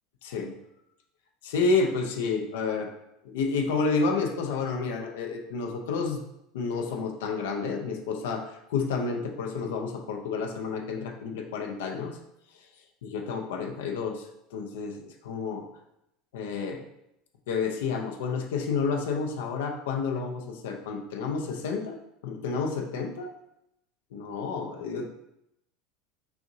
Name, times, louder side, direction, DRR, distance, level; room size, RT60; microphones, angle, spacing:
voice 1, 0.2-0.5 1.4-2.9 3.2-6.2 6.5-8.4 8.7-12.2 13.0-14.2 14.5-15.6 16.3-16.9 17.5-22.0 22.2-23.3 24.1-25.1, left 4 dB, 80° left, 3 dB, 0.5 m, -30 dB
5.6 x 2.7 x 2.7 m, 0.82 s
hypercardioid pair, 90°, 0 cm